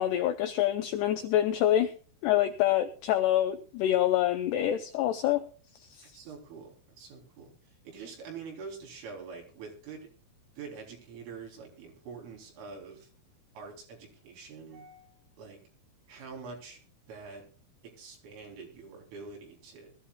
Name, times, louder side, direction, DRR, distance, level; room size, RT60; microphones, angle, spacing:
voice 1, 0.0-1.9 2.2-5.4 6.0-6.1, left 12 dB, 85° left, 8 dB, 2.4 m, -26 dB
voice 2, 6.1-10.1 10.6-13.1 13.6-15.6 16.1-16.8 17.1-17.4 18.0-19.9, right 5 dB, 75° right, 0 dB, 6.0 m, -45 dB
21.0 x 13.5 x 2.3 m, 0.40 s
omnidirectional pair, 5.7 m